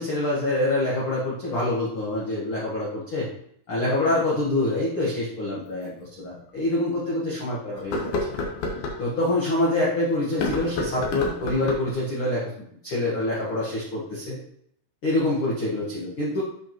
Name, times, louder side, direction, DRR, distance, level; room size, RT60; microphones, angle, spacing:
voice 1, 0.0-3.3 3.7-8.4 9.0-12.5 12.8-14.4 15.0-16.4, left 1 dB, 90° left, -6 dB, 1.1 m, -26 dB
sound 1, 5.8-5.9 6.5-6.6 7.8-9.0 10.3-12.0, left 2 dB, 70° left, 1.9 m, -29 dB
7.8 x 6.1 x 3.0 m, 0.70 s
omnidirectional pair, 4.8 m